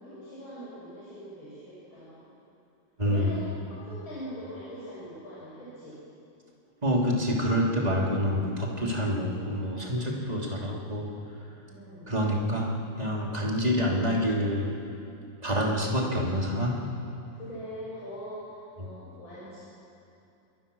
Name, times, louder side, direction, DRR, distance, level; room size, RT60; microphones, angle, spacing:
voice 1, 0.0-2.3 3.0-5.9 11.7-12.1 17.3-19.6, equal, 80° left, -9 dB, 7.5 m, -42 dB
voice 2, 3.0-3.3 6.8-11.1 12.1-14.7 15.4-16.8 18.8-18.9, equal, 20° right, -2 dB, 3.3 m, -27 dB
27.5 x 22.0 x 7.1 m, 2.7 s
omnidirectional pair, 2.2 m